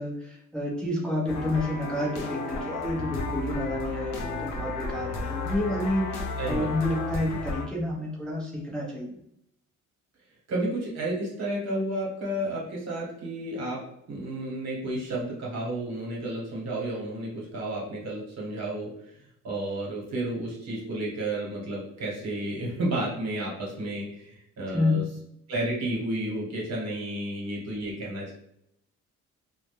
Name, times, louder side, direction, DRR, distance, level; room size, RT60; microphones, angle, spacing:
voice 1, 0.0-9.1 24.7-25.0, left 1 dB, 5° left, -4 dB, 0.6 m, -29 dB
sound 1, 1.3-7.7, left 3 dB, 90° left, 0.5 m, -33 dB
voice 2, 6.4-6.7 10.5-19.2 19.4-25.0 25.5-28.3, right 1 dB, 60° right, -3 dB, 1.1 m, -32 dB
2.1 x 2.1 x 2.9 m, 0.76 s
cardioid pair, 90°, 30 cm